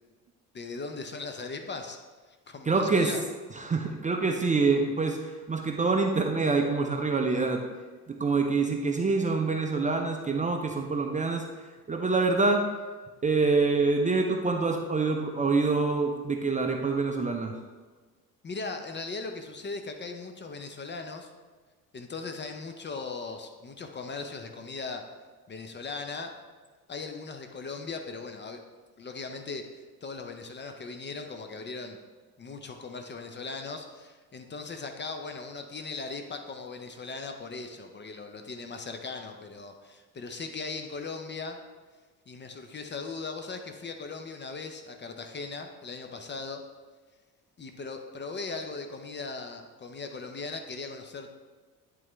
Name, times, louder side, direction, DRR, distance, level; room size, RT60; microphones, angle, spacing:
voice 1, 0.5-2.0 2.3-3.2 18.4-21.3 21.9-25.1 25.5-26.4 26.9-28.6 29.0-29.7 30.0-32.0 32.4-41.6 42.3-46.6 47.6-51.3, left 4 dB, 25° left, 5 dB, 0.7 m, -38 dB
voice 2, 2.6-3.1 3.5-7.6 8.1-11.4 11.9-12.6 13.2-17.5, right 3 dB, 15° right, 3 dB, 0.6 m, -26 dB
10.5 x 3.9 x 3.3 m, 1.4 s
figure-of-eight pair, 55°, 46 cm